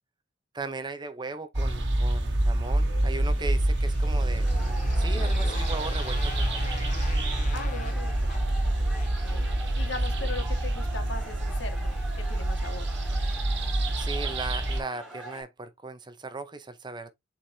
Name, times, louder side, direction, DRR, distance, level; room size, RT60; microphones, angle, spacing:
voice 1, 0.5-4.5 5.0-6.7 14.0-17.1, right 3 dB, 20° right, 0.7 m, -37 dB
sound 1, 1.5-14.8, right 1 dB, 60° right, 1.7 m, -27 dB
Motorcycle, 3.0-9.4, left 4 dB, 40° left, 0.9 m, -44 dB
sound 2, 4.4-15.4, right 2 dB, 5° right, 4.9 m, -44 dB
voice 2, 7.5-8.8 9.2-9.5 9.8-12.9, left 3 dB, 70° left, 1.8 m, -40 dB
8.0 x 4.4 x 2.7 m
head